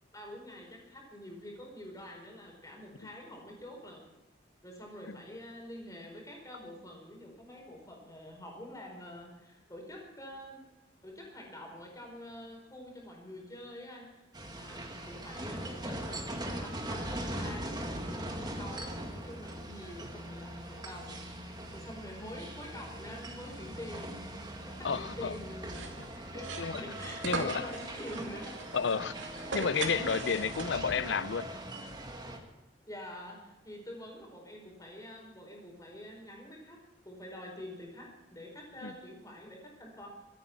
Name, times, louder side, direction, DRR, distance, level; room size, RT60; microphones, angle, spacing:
voice 1, 0.1-4.0 4.6-10.6 11.0-14.3 14.5-24.3 24.6-28.5 32.9-36.8 37.0-40.1, left 1 dB, 20° left, 0 dB, 4.7 m, -46 dB
sound 1, 14.3-32.4, right 1 dB, 20° right, 1.9 m, -41 dB
sound 2, 16.7-25.8, equal, ahead, 3.1 m, -52 dB
voice 2, 24.8-25.3 26.0-26.1 26.6-26.8 27.2-27.7 28.7-29.1 29.5-31.5 38.8-38.9, left 5 dB, 70° left, 17 dB, 0.6 m, -31 dB
sound 3, 25.6-31.0, right 3 dB, 80° right, 2.5 m, -40 dB
24.5 x 9.5 x 6.0 m, 1.1 s
head